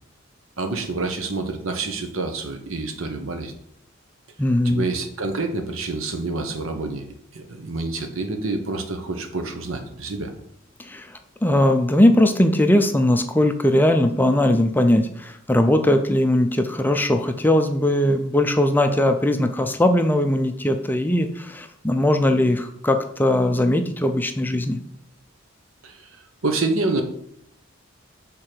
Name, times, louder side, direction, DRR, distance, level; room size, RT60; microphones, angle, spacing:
voice 1, 0.6-3.5 4.6-7.0 7.3-10.3 25.8-26.1 26.4-27.0, right 3 dB, 80° right, 6 dB, 0.9 m, -27 dB
voice 2, 4.4-4.9 10.8-24.8, left 1 dB, 10° left, 6 dB, 0.4 m, -19 dB
6.7 x 3.7 x 4.5 m, 0.72 s
head